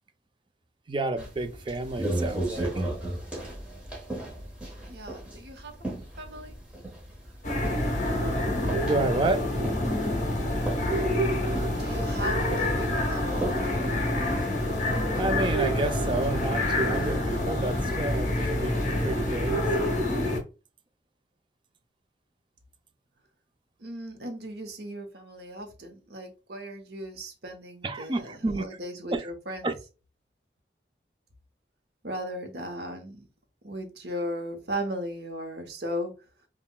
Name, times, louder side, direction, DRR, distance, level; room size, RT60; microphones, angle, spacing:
voice 1, 0.9-2.9 8.1-8.2 8.8-9.5 15.1-19.8 27.8-28.8 29.1-29.3 29.6-29.7, right 2 dB, 30° right, 0.4 m, -30 dB
sound 1, 1.2-19.4, right 1 dB, 5° right, 1.2 m, -38 dB
voice 2, 4.9-5.7 6.2-6.6 11.7-13.6 23.8-29.7 32.0-33.3 33.6-36.1, equal, 70° right, 0.9 m, -37 dB
sound 2, 7.4-20.4, left 1 dB, 45° left, 0.9 m, -27 dB
5.4 x 2.3 x 2.2 m
head